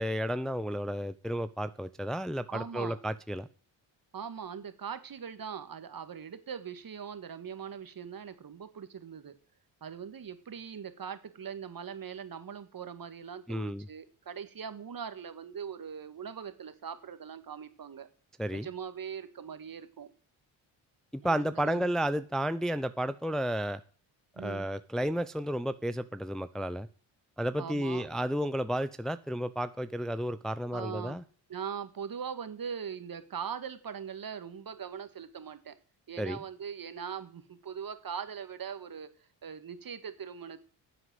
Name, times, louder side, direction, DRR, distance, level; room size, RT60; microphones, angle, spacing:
voice 1, 0.0-3.5 13.5-13.9 18.4-18.7 21.1-23.8 24.4-26.9 27.4-31.2 36.2-36.4, equal, ahead, 12 dB, 0.6 m, -32 dB
voice 2, 2.5-3.0 4.1-9.3 9.8-18.1 18.5-20.1 21.2-22.0 24.4-24.7 27.6-28.1 30.7-31.2 31.5-35.8 36.1-40.6, right 7 dB, 45° right, 11 dB, 1.9 m, -41 dB
10.5 x 8.0 x 7.9 m, 0.41 s
supercardioid pair, 60°, 47 cm